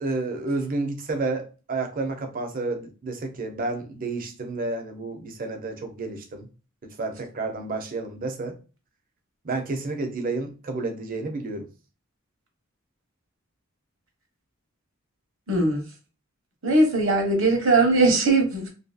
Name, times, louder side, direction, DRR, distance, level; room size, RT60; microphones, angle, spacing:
voice 1, 0.0-6.5 6.8-8.5 9.4-11.7, right 3 dB, 45° right, 0.6 m, -30 dB
voice 2, 15.5-15.8 16.6-18.7, right 2 dB, 65° right, 1.0 m, -20 dB
2.7 x 2.7 x 2.3 m
head